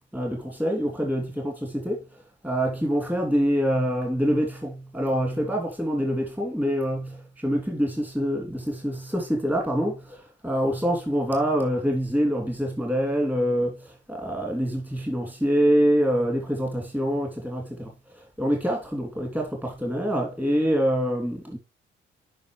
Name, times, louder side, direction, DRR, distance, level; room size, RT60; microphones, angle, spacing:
voice 1, 0.1-2.0 2.4-17.9 18.4-21.6, equal, 10° right, 3.3 m, -25 dB
9.3 x 5.8 x 3.4 m
cardioid pair, 90°, 20 cm